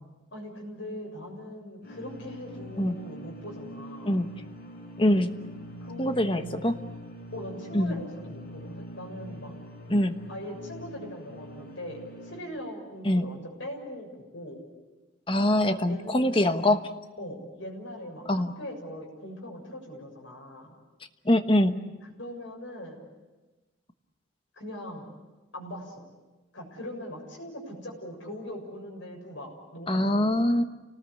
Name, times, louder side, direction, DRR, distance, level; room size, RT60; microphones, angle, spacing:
voice 1, 0.3-4.2 5.8-6.8 7.3-9.5 10.3-14.6 15.5-16.8 17.2-20.8 22.2-23.0 24.5-25.1 25.5-26.0 26.5-30.3, equal, 65° left, 1 dB, 7.0 m, -41 dB
sound 1, 1.8-12.4, equal, 50° left, 4.7 m, -44 dB
voice 2, 5.0-5.3 6.0-6.7 7.7-8.0 9.9-10.2 13.0-13.3 15.3-16.9 18.3-18.5 21.2-21.8 29.9-30.6, left 1 dB, 25° left, 8 dB, 1.2 m, -23 dB
29.0 x 19.5 x 8.5 m, 1.2 s
head